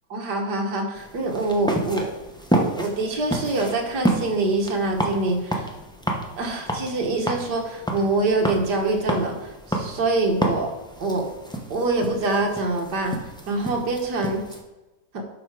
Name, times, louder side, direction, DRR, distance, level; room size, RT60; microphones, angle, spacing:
voice 1, 0.1-2.2 2.5-5.7 6.4-10.7 11.0-11.3 11.7-13.2 13.5-14.4 15.1-15.2, right 2 dB, 60° right, 2 dB, 1.9 m, -25 dB
sound 1, 1.0-14.6, right 1 dB, 5° left, 0.5 m, -30 dB
10.5 x 6.5 x 4.8 m, 1.1 s
omnidirectional pair, 2.1 m